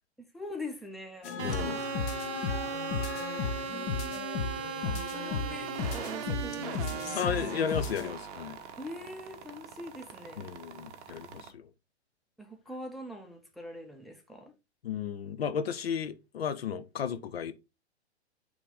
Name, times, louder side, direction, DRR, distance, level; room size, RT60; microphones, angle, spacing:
voice 1, 0.3-1.3 3.7-4.5 4.8-7.7 8.8-10.5 12.4-14.5, left 1 dB, ahead, 0.9 m, -43 dB
sound 1, 1.2-8.1, left 5 dB, 30° left, 0.9 m, -35 dB
voice 2, 1.4-1.8 7.1-8.6 10.4-11.7 14.8-17.5, left 7 dB, 60° left, 0.8 m, -34 dB
sound 2, 1.4-11.5, right 6 dB, 35° right, 0.9 m, -39 dB
8.4 x 3.4 x 3.9 m
figure-of-eight pair, 110°, 34 cm